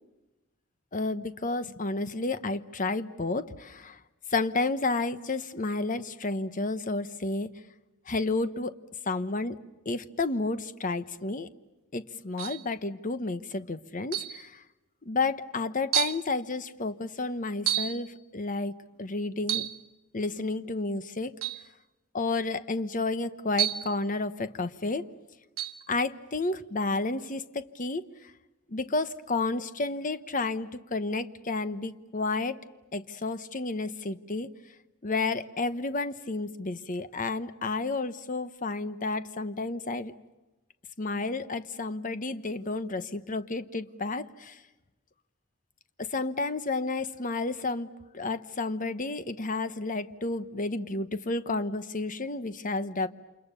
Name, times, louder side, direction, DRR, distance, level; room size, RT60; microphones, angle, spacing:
voice 1, 0.9-4.0 4.3-7.5 8.1-8.7 9.1-9.6 9.8-11.5 11.9-14.6 15.0-18.7 19.0-19.7 20.1-21.3 22.1-25.1 25.9-28.3 28.7-32.6 32.9-34.5 35.0-40.1 41.0-44.6 46.0-53.1, left 3 dB, 40° left, 12 dB, 1.0 m, -31 dB
sound 1, 12.4-12.7 14.1-14.4 15.2-15.3 15.9-16.2 17.7-18.0 19.4-19.8 21.4-21.6 23.6-24.0 25.6-25.8, right 12 dB, 80° right, 1.2 m, -30 dB
29.5 x 27.5 x 6.9 m, 1.1 s
head